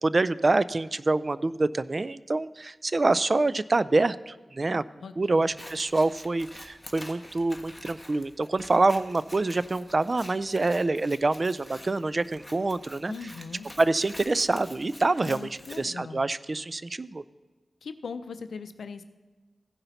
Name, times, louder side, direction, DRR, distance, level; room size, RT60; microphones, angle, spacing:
voice 1, 0.0-4.8 5.2-13.1 13.8-15.5 15.8-17.2, right 2 dB, 45° right, 17 dB, 0.3 m, -26 dB
voice 2, 5.0-5.5 13.1-13.7 15.2-16.2 17.8-19.0, left 5 dB, 90° left, 11 dB, 0.5 m, -39 dB
Scissors, 5.4-15.8, left 1 dB, 10° left, 1.3 m, -48 dB
15.5 x 5.6 x 4.0 m, 1.3 s
cardioid pair, 45°, 0 cm